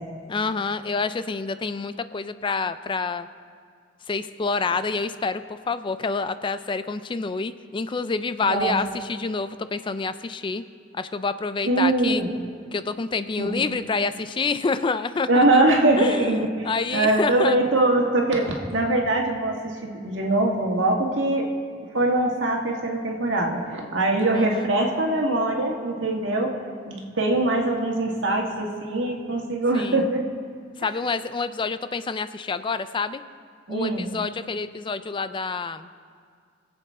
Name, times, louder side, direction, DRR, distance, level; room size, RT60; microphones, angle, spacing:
voice 1, 0.3-3.3 4.1-10.6 10.9-12.2 12.7-15.6 16.0-17.6 24.3-24.7 29.7-30.1 30.8-33.2 33.7-35.9, left 4 dB, 25° left, 13 dB, 0.4 m, -28 dB
voice 2, 8.4-8.8 11.7-12.3 13.4-13.6 15.3-21.5 21.9-26.5 26.9-30.2 33.7-34.1, right 2 dB, 85° right, 0 dB, 1.7 m, -22 dB
22.5 x 7.8 x 3.6 m, 2.1 s
head